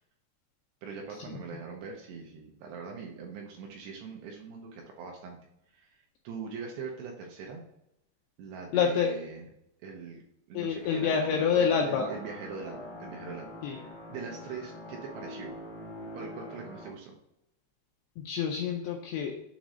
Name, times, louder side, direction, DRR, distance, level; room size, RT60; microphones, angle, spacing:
voice 1, 0.8-5.4 5.7-7.6 8.4-9.4 9.8-10.2 10.5-11.6 11.9-15.5 16.1-17.1, right 5 dB, 80° right, 1 dB, 2.5 m, -42 dB
voice 2, 8.7-9.1 10.5-12.1 13.6-13.8 18.2-19.4, left 7 dB, 85° left, 1 dB, 2.3 m, -27 dB
sound 1, 10.8-16.9, left 1 dB, 60° left, 1.2 m, -44 dB
7.3 x 3.1 x 5.0 m, 0.81 s
omnidirectional pair, 5.4 m